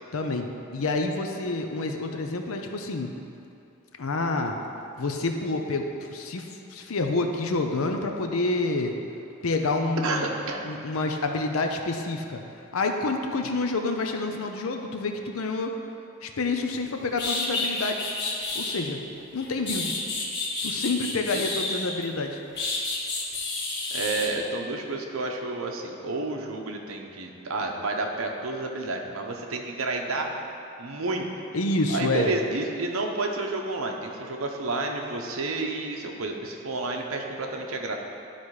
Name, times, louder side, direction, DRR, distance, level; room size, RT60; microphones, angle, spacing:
voice 1, 0.1-3.1 4.0-4.6 5.0-9.0 9.4-10.3 10.6-12.4 12.7-15.8 16.2-18.0 18.5-19.0 19.3-20.0 20.6-22.4 31.5-32.3, left 3 dB, 80° left, 4 dB, 0.7 m, -28 dB
voice 2, 10.0-10.6 21.3-21.4 23.9-30.3 30.8-31.3 31.5-31.6 31.9-37.9, right 2 dB, 80° right, 2 dB, 0.9 m, -30 dB
sound 1, 16.8-16.9 17.2-18.8 19.4-22.0 22.6-24.3, left 3 dB, 50° left, 1.6 m, -30 dB
11.5 x 4.2 x 4.8 m, 2.7 s
head